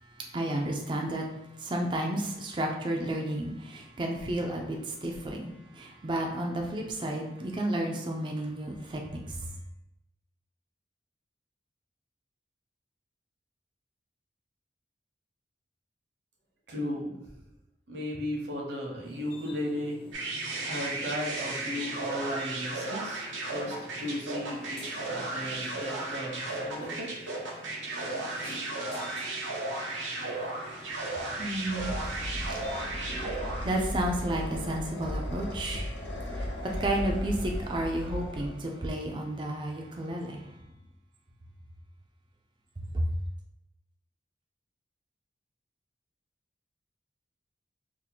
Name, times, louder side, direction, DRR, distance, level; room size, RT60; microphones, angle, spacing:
voice 1, 0.2-9.5 31.2-40.5 42.8-43.1, right 1 dB, 25° right, 0 dB, 0.4 m, -32 dB
voice 2, 16.7-17.2 17.9-20.0 20.7-27.1, equal, 65° right, -2 dB, 0.9 m, -35 dB
sound 1, 19.0-38.1, equal, 30° left, 0.6 m, -49 dB
sound 2, 20.1-33.9, right 2 dB, 90° right, 0.8 m, -35 dB
sound 3, 31.3-39.1, left 1 dB, 70° left, 0.8 m, -36 dB
2.7 x 2.5 x 4.1 m, 0.94 s
head